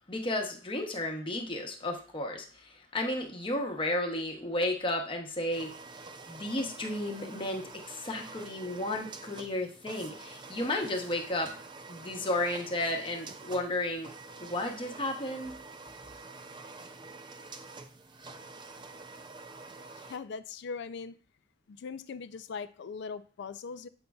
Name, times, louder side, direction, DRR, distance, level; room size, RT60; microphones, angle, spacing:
voice 1, 0.1-5.7 6.3-11.5 11.9-14.1 14.4-15.6, left 1 dB, 25° left, 0.9 m, -33 dB
sound 1, 5.5-20.2, right 3 dB, 25° right, 0.4 m, -47 dB
voice 2, 20.0-21.2 21.7-23.9, left 5 dB, 60° left, 0.4 m, -40 dB
8.0 x 5.2 x 2.3 m
head